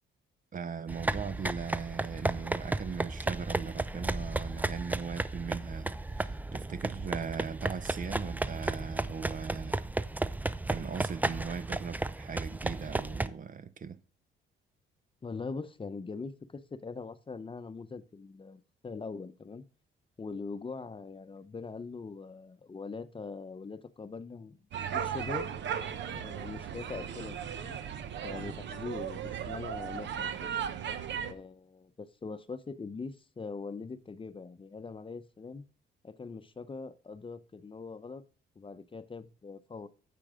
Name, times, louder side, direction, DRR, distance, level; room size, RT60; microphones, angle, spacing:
voice 1, 0.5-9.8 10.7-14.0, right 6 dB, 40° right, 0.7 m, -39 dB
sound 1, 0.9-13.3, right 2 dB, 10° right, 0.5 m, -34 dB
voice 2, 15.2-19.6 20.2-25.5 26.1-27.8 28.2-30.5 31.2-35.6 36.0-38.2 38.6-39.9, left 4 dB, 25° left, 0.8 m, -42 dB
sound 2, 24.7-31.3, right 8 dB, 65° right, 1.0 m, -36 dB
10.0 x 6.8 x 3.7 m
cardioid pair, 90°, 20 cm